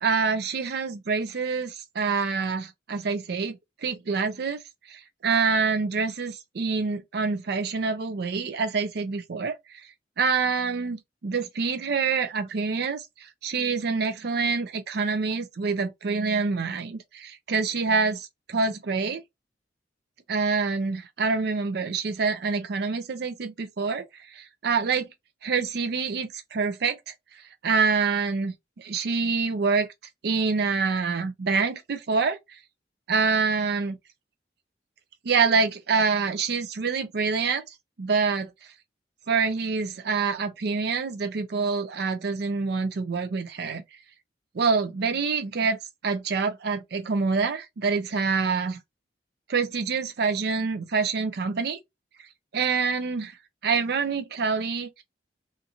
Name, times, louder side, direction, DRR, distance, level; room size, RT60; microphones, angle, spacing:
voice 1, 0.0-3.6 3.8-4.6 4.9-9.8 10.2-19.2 20.3-24.0 24.3-25.1 25.4-27.1 27.6-29.9 30.2-32.4 33.1-34.0 35.2-37.6 38.0-38.5 39.3-43.8 44.5-48.8 49.5-51.8 52.5-53.4 53.6-55.0, right 5 dB, 60° right, 0.5 m, -26 dB
2.8 x 2.5 x 2.5 m
head